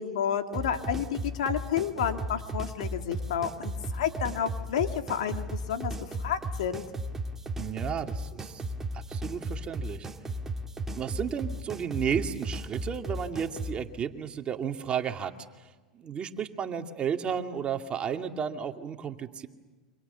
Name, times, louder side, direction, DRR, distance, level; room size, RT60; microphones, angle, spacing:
voice 1, 0.0-5.9 6.2-6.8, left 8 dB, 75° left, 6 dB, 2.5 m, -30 dB
sound 1, 0.5-13.8, right 1 dB, 10° right, 2.3 m, -35 dB
voice 2, 7.6-8.6 8.9-10.1 10.9-15.3 15.9-19.5, right 7 dB, 30° right, 5 dB, 2.2 m, -33 dB
29.5 x 25.5 x 7.0 m, 1.3 s
hypercardioid pair, 105°, 4 cm